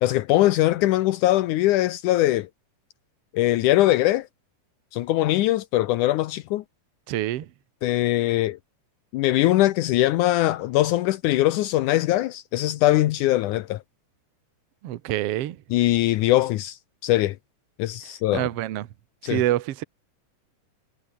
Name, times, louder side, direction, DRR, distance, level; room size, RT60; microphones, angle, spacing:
voice 1, 0.0-2.5 3.3-4.3 4.9-6.6 7.8-8.6 9.1-13.8 15.7-17.4 17.8-18.5 19.2-19.4, left 15 dB, 75° left, 2.2 m, -21 dB
voice 2, 7.1-7.5 14.8-15.6 18.3-18.9 19.2-19.8, right 14 dB, 60° right, 1.7 m, -26 dB
omnidirectional pair, 3.7 m